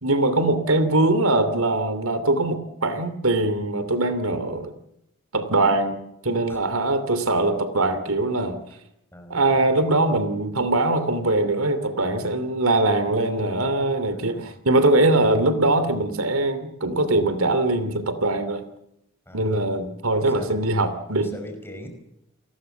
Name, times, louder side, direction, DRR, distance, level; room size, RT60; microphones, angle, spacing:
voice 1, 0.0-4.7 5.3-6.0 6.2-8.6 9.3-18.6 19.3-21.3, right 2 dB, 75° right, 12 dB, 2.9 m, -22 dB
voice 2, 9.1-9.5 14.1-14.6 19.2-19.7 20.2-20.5 21.1-21.9, left 1 dB, 10° left, 5 dB, 5.3 m, -40 dB
29.0 x 21.0 x 7.1 m, 0.82 s
head